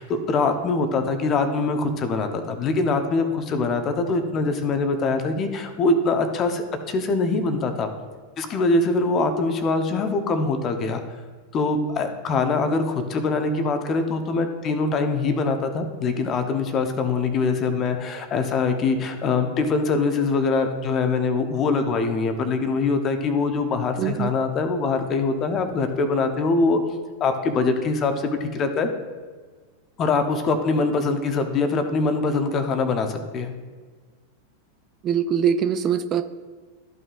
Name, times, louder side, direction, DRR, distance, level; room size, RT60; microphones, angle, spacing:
voice 1, 0.0-7.9 8.4-11.0 11.5-26.8 27.2-28.9 30.0-33.5, left 3 dB, 30° left, 7 dB, 0.9 m, -23 dB
voice 2, 24.0-24.3 35.0-36.2, right 8 dB, 30° right, 10 dB, 0.4 m, -22 dB
13.5 x 5.5 x 2.5 m, 1.5 s
figure-of-eight pair, 90°, 0 cm